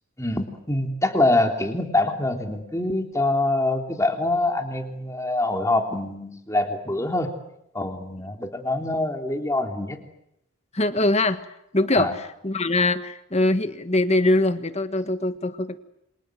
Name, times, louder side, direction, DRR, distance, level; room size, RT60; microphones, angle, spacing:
voice 1, 0.2-7.3 7.7-10.0 12.0-12.1, left 2 dB, 15° left, 4 dB, 3.3 m, -24 dB
voice 2, 10.7-11.4 11.7-15.8, left 2 dB, 30° left, 10 dB, 1.5 m, -22 dB
28.5 x 26.5 x 7.8 m, 0.80 s
head